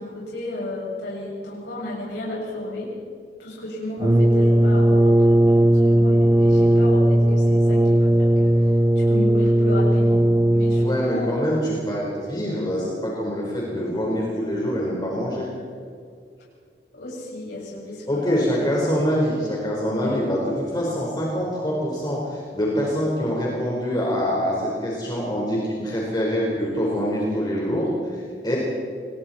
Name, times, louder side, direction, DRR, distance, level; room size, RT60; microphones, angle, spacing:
voice 1, 0.0-2.9 3.4-8.7 9.0-11.3 16.9-18.5 20.0-20.2, left 1 dB, 75° left, -6 dB, 7.1 m, -33 dB
Brass instrument, 4.0-11.1, right 1 dB, 15° right, 0.8 m, -17 dB
voice 2, 10.8-15.5 18.1-28.6, equal, 25° left, -4 dB, 4.5 m, -25 dB
28.0 x 21.5 x 4.4 m, 2.2 s
head